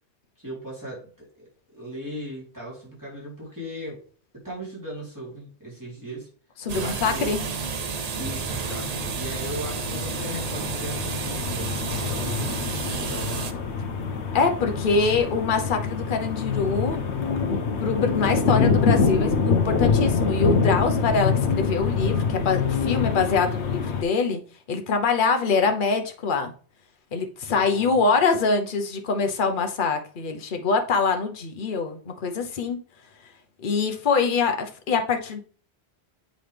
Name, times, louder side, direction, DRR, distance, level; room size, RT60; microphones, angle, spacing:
voice 1, 0.4-4.0 4.4-6.3 6.7-7.3 8.2-12.4 12.9-13.7 27.5-28.0, equal, 15° right, 3.6 m, -38 dB
voice 2, 6.6-7.4 14.3-17.0 17.8-24.4 24.7-26.5 27.1-32.8 33.6-35.4, left 4 dB, 50° left, 1.0 m, -24 dB
sound 1, 6.7-13.5, right 5 dB, 45° right, 0.7 m, -31 dB
sound 2, 8.1-24.0, left 5 dB, 85° left, 1.1 m, -25 dB
7.7 x 5.3 x 3.4 m
omnidirectional pair, 1.1 m